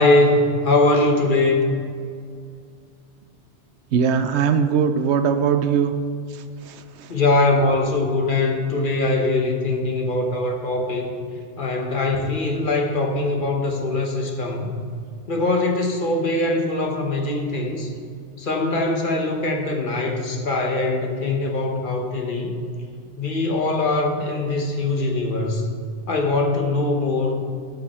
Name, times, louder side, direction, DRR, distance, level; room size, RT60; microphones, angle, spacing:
voice 1, 0.0-1.8 7.1-11.1 11.6-14.7 15.3-17.9 18.4-22.6 23.2-25.7 26.1-27.4, left 2 dB, 50° left, 2 dB, 1.1 m, -22 dB
voice 2, 3.9-5.9 6.3-7.1, right 7 dB, 75° right, 9 dB, 0.9 m, -21 dB
13.0 x 5.4 x 4.2 m, 2.3 s
omnidirectional pair, 1.2 m